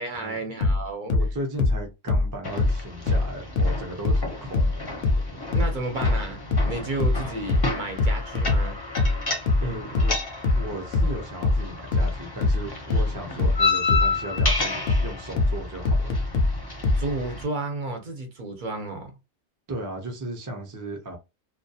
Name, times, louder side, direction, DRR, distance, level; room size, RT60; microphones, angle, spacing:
voice 1, 0.0-1.1 5.5-8.8 16.9-19.1, right 2 dB, 55° right, 0.7 m, -32 dB
sound 1, 0.6-3.8 4.0-17.1, left 3 dB, 65° left, 0.8 m, -22 dB
voice 2, 1.1-4.9 9.6-10.2 10.5-16.2 19.7-21.2, right 1 dB, 30° right, 0.4 m, -36 dB
sound 2, 2.4-17.4, left 3 dB, 30° left, 0.5 m, -31 dB
2.2 x 2.2 x 2.7 m
omnidirectional pair, 1.1 m